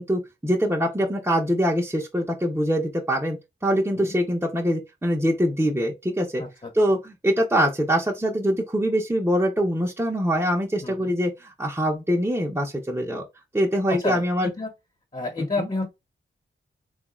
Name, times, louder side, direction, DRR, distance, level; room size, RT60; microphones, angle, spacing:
voice 1, 0.0-6.4 6.7-13.2 13.5-14.5 15.4-15.7, equal, 10° right, 0.8 m, -24 dB
voice 2, 10.8-11.1 14.0-14.2 14.6-14.7 15.1-15.9, left 3 dB, 35° left, 1.4 m, -29 dB
3.4 x 2.4 x 3.1 m
cardioid pair, 50°, 21 cm